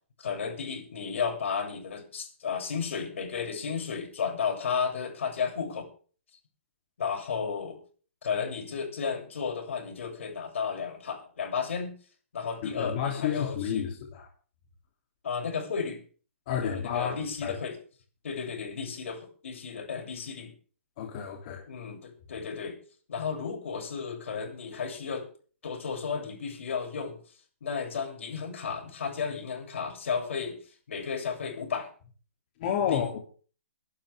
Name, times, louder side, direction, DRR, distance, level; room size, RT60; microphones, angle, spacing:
voice 1, 0.2-5.9 7.0-7.8 8.2-11.9 12.3-13.9 15.2-16.0 16.5-17.8 18.2-20.5 21.7-22.8 23.1-25.3 25.6-27.2 27.6-30.6 30.9-31.9 32.9-33.2, left 6 dB, 70° left, 2 dB, 7.6 m, -33 dB
voice 2, 12.6-14.3 16.5-17.5 21.0-21.6 32.6-33.2, left 8 dB, 40° left, 1 dB, 3.2 m, -30 dB
23.5 x 12.0 x 3.7 m, 0.41 s
hypercardioid pair, 150°, 7 cm